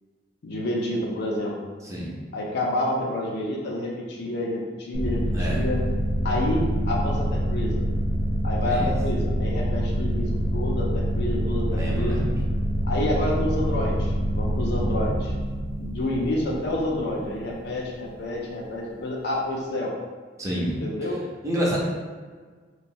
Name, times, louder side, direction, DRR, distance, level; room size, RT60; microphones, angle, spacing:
voice 1, 0.4-1.5 2.3-5.8 6.2-7.8 8.4-12.2 12.8-15.3 15.8-19.9 20.8-21.2, left 1 dB, 60° left, -2 dB, 0.5 m, -28 dB
sound 1, 4.9-18.2, equal, 90° right, 0.4 m, -26 dB
voice 2, 5.3-5.6 8.6-8.9 11.7-12.3 20.4-20.8 21.4-21.8, equal, 15° right, -5 dB, 0.5 m, -28 dB
2.9 x 2.2 x 2.6 m, 1.5 s
head